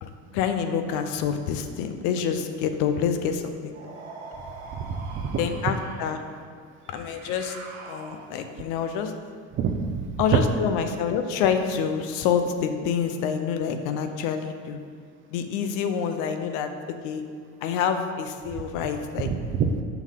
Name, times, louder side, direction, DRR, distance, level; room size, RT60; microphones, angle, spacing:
voice 1, 0.0-4.0 5.4-6.2 6.9-7.6 7.8-9.1 10.2-14.8 15.3-17.2 17.6-19.3, left 7 dB, 60° left, 7 dB, 0.7 m, -27 dB
sound 1, 3.7-6.2 6.8-8.5, right 3 dB, 75° right, 1.5 m, -43 dB
voice 2, 4.7-5.4 9.6-10.4 19.3-19.8, right 6 dB, 35° right, 6 dB, 0.6 m, -26 dB
5.9 x 5.6 x 3.7 m, 2.1 s
hypercardioid pair, 90°, 35 cm